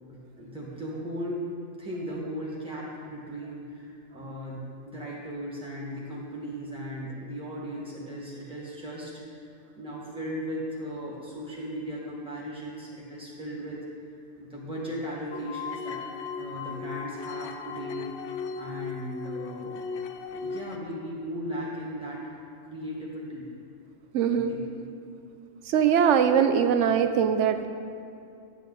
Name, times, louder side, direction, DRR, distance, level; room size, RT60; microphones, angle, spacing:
voice 1, 0.1-1.5 1.8-9.1 9.8-16.0 16.4-18.1 18.6-19.8 20.3-22.4 22.7-23.4 24.3-24.6, equal, 5° right, -5 dB, 1.7 m, -37 dB
sound 1, 15.3-20.8, left 5 dB, 65° left, 0.8 m, -37 dB
voice 2, 24.1-24.5 25.7-27.7, right 8 dB, 70° right, 9 dB, 0.9 m, -22 dB
10.0 x 8.3 x 4.1 m, 2.6 s
omnidirectional pair, 1.3 m